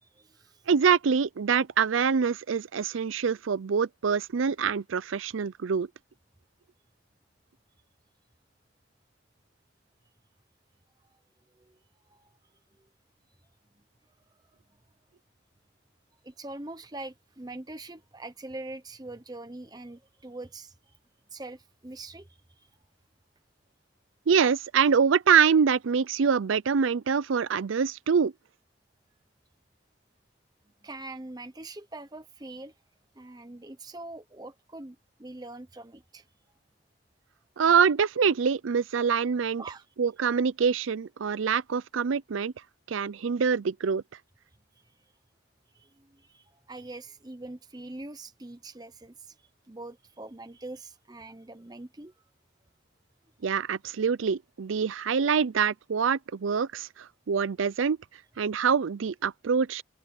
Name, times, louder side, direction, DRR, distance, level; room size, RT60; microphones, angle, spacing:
voice 1, 0.0-0.6 11.6-11.8 12.1-12.3 16.2-21.0 21.3-22.3 22.6-22.7 30.8-32.7 33.2-36.3 39.6-39.9 45.7-49.4 49.7-52.1, right 2 dB, 20° right, 0.8 m, -43 dB
voice 2, 0.7-5.9 24.3-28.3 37.6-39.6 40.0-42.5 42.9-44.0 53.4-58.0 58.4-59.8, right 6 dB, 90° right, 0.5 m, -25 dB
head